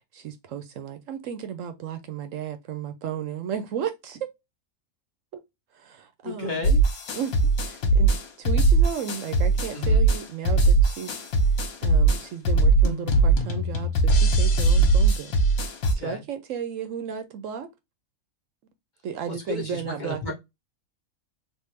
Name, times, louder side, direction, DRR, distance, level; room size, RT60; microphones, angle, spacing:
voice 1, 0.0-4.3 5.3-5.4 5.7-6.7 7.1-7.3 7.7-11.1 11.8-15.3 15.9-17.7 19.0-20.3, right 8 dB, 70° right, 0.9 m, -34 dB
voice 2, 6.2-6.8 9.7-10.1 15.8-16.2 19.3-20.3, left 3 dB, 35° left, 1.0 m, -33 dB
sound 1, 6.6-15.9, right 3 dB, 80° left, 1.4 m, -20 dB
3.5 x 2.4 x 3.1 m
omnidirectional pair, 1.5 m